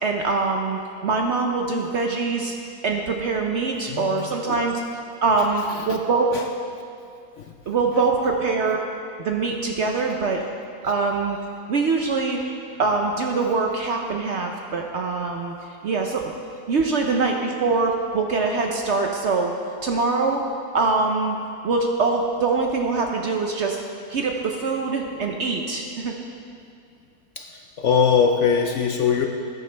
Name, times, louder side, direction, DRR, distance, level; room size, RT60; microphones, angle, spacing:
voice 1, 0.0-2.6 2.8-4.8 5.2-6.3 7.7-8.8 9.2-10.4 10.8-11.4 11.7-12.4 12.8-15.5 15.8-16.3 16.7-19.5 19.8-20.4 20.7-21.4 21.6-23.8 24.1-26.1, right 4 dB, 60° right, 2 dB, 0.8 m, -23 dB
voice 2, 3.9-4.6 5.7-5.8 6.3-6.4 7.4-7.5 27.4-29.3, left 6 dB, 65° left, 3 dB, 0.8 m, -22 dB
14.5 x 9.6 x 3.3 m, 2.4 s
omnidirectional pair, 1.6 m